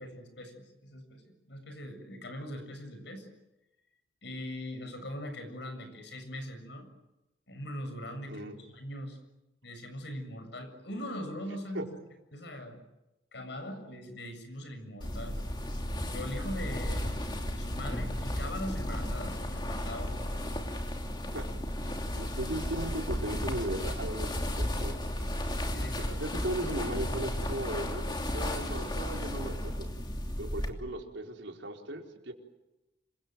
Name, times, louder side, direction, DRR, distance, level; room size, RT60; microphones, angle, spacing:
voice 1, 0.0-3.3 4.2-6.9 7.5-9.2 9.6-12.0 12.3-12.8 13.3-15.4 16.1-17.2 17.5-20.2 25.5-26.2, left 1 dB, 65° left, 7 dB, 7.5 m, -41 dB
sound 1, 15.0-30.7, left 1 dB, 25° left, 2.9 m, -34 dB
voice 2, 22.2-25.0 26.0-29.9 30.4-32.3, right 1 dB, 80° right, 2 dB, 4.5 m, -37 dB
27.5 x 25.0 x 7.7 m, 0.96 s
head